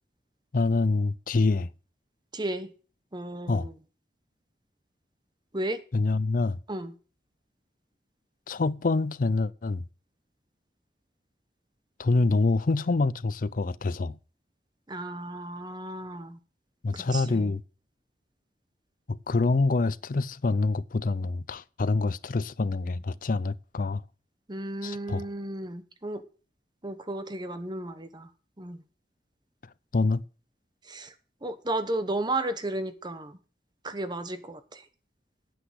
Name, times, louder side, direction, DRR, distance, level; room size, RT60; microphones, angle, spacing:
voice 1, 0.5-1.7 3.5-3.7 5.9-6.6 8.5-9.8 12.0-14.2 16.8-17.6 19.1-24.0 24.8-25.3 29.9-30.2, left 3 dB, 50° left, 0.5 m, -26 dB
voice 2, 2.3-2.7 3.1-3.7 5.5-5.8 6.7-6.9 14.9-16.4 16.9-17.5 24.5-26.2 26.8-28.3 28.6-28.8 30.9-31.1 31.4-33.4 33.8-34.8, right 1 dB, 25° right, 0.9 m, -33 dB
9.4 x 8.0 x 7.9 m
head